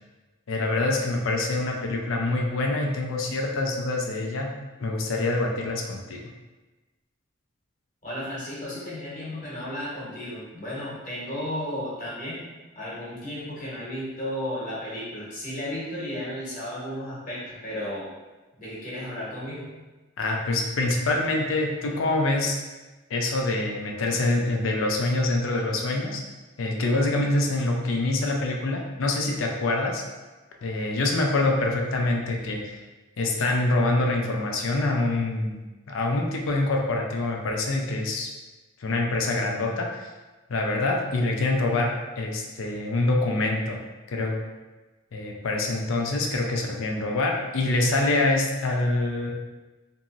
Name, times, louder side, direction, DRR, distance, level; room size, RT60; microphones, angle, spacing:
voice 1, 0.5-4.5 4.8-6.2 20.2-22.6 23.1-26.2 26.6-30.0 30.6-32.8 33.2-35.6 35.9-38.3 38.8-40.1 40.5-43.8 44.1-44.4 45.1-49.3, left 2 dB, 75° left, 0 dB, 0.4 m, -25 dB
voice 2, 8.0-12.4 12.7-18.1 18.6-19.7, left 1 dB, 40° left, -8 dB, 1.0 m, -34 dB
2.9 x 2.7 x 2.4 m, 1.2 s
head